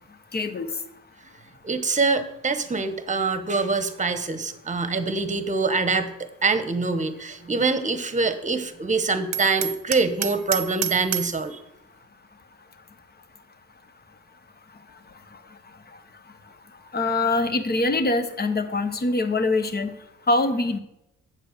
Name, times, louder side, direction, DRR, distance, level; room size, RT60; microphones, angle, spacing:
voice 1, 0.3-0.7 16.9-19.9 20.3-20.8, left 2 dB, 30° left, 8 dB, 1.3 m, -23 dB
voice 2, 1.6-6.1 6.4-11.6, right 3 dB, 25° right, 10 dB, 1.2 m, -24 dB
Hammer, 9.3-11.4, right 11 dB, 65° right, 0.8 m, -29 dB
8.1 x 7.0 x 6.7 m, 0.84 s
cardioid pair, 90°, 30 cm